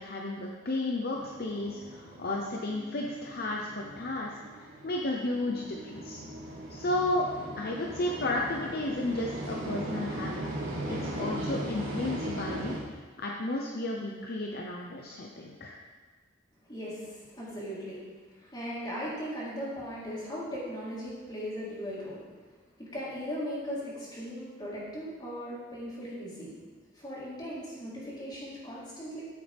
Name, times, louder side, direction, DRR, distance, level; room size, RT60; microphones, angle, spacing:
voice 1, 0.0-6.2 6.7-7.3 7.6-10.3 10.9-15.8, left 2 dB, 50° left, -1 dB, 0.9 m, -33 dB
sound 1, 1.1-12.8, right 1 dB, 80° right, 3.3 m, -38 dB
voice 2, 16.7-22.2 22.9-26.5 26.9-29.2, equal, 20° left, -8 dB, 3.8 m, -38 dB
14.0 x 8.4 x 3.6 m, 1.4 s
head